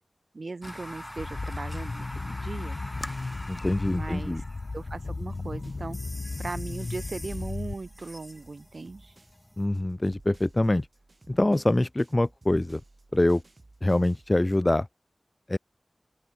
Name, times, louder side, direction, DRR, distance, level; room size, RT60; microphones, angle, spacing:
voice 1, 0.3-2.8 3.8-4.4 4.7-6.0 6.4-9.2, right 3 dB, 65° right, 2.9 m, -38 dB
sound 1, 0.6-9.7, left 1 dB, 15° left, 3.7 m, -44 dB
sound 2, 1.2-7.7, left 3 dB, 65° left, 4.2 m, -35 dB
voice 2, 3.5-4.4 9.6-10.9 11.3-12.8 13.1-13.4 13.8-14.9 15.5-15.6, left 1 dB, 30° left, 0.7 m, -24 dB
sound 3, 5.0-9.5 9.7-14.4, right 2 dB, 45° right, 7.5 m, -56 dB
open air
wide cardioid pair, 75°, 0 cm